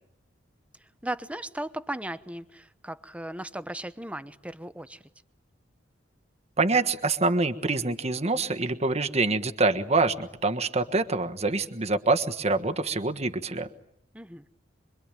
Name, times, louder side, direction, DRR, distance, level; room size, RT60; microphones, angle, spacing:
voice 1, 0.8-5.0 14.1-14.5, right 1 dB, 5° right, 1.0 m, -37 dB
voice 2, 6.6-13.7, right 3 dB, 35° right, 1.4 m, -25 dB
26.0 x 23.5 x 9.1 m
head